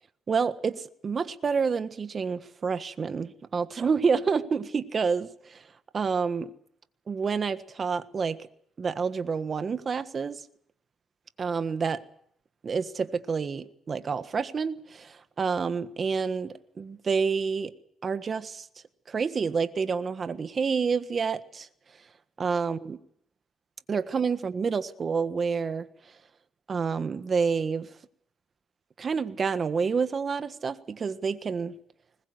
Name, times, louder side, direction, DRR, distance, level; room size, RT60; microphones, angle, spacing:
voice 1, 0.3-5.6 5.9-6.5 7.1-8.4 8.8-10.4 11.4-12.0 12.6-17.7 18.0-18.7 19.1-21.7 22.4-23.0 23.9-25.9 26.7-27.9 29.0-31.7, right 5 dB, 40° right, 1.4 m, -28 dB
21.0 x 20.5 x 8.0 m
cardioid pair, 90°, 0 cm